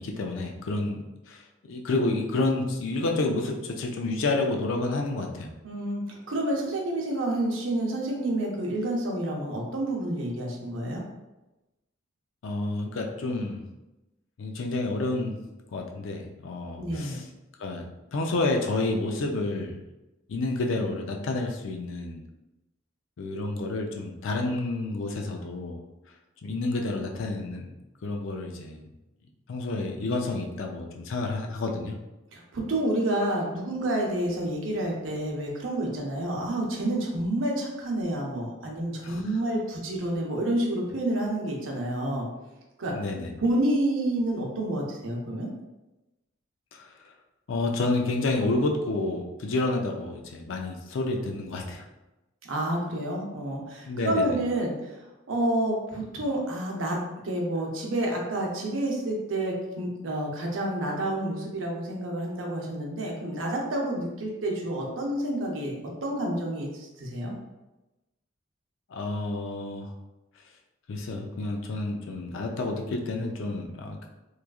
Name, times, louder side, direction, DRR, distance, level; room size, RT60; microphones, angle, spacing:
voice 1, 0.0-5.5 12.4-13.7 14.4-15.4 15.7-17.3 17.6-19.8 20.3-22.2 23.2-25.8 26.4-27.7 28.0-28.8 29.5-32.0 39.0-39.2 42.9-43.3 46.7-47.1 47.5-51.8 53.9-54.4 68.9-69.9 70.9-74.1, left 2 dB, 80° left, 2 dB, 0.4 m, -29 dB
voice 2, 5.6-11.0 16.8-17.2 32.3-42.3 42.8-42.9 43.4-45.5 52.4-55.0 55.3-57.0 57.2-65.8 66.0-67.4, right 1 dB, 85° right, -1 dB, 0.7 m, -29 dB
3.1 x 2.3 x 2.3 m, 1.0 s
head